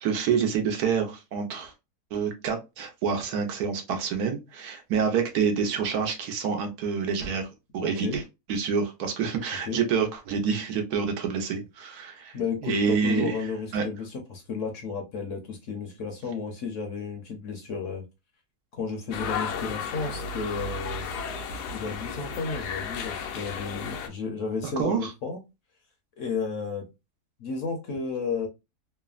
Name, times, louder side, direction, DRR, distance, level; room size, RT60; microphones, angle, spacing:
voice 1, 0.0-1.7 2.1-7.5 7.7-8.2 8.5-12.4 12.6-13.4 13.7-13.8 24.6-25.1, right 6 dB, 75° right, 1.2 m, -27 dB
voice 2, 7.8-8.2 9.7-9.8 12.3-18.0 18.7-21.1 21.7-25.4 26.2-26.8 27.4-28.5, left 5 dB, 60° left, 0.9 m, -33 dB
sound 1, 19.1-24.1, left 5 dB, 85° left, 1.1 m, -34 dB
3.2 x 2.0 x 2.3 m
omnidirectional pair, 1.7 m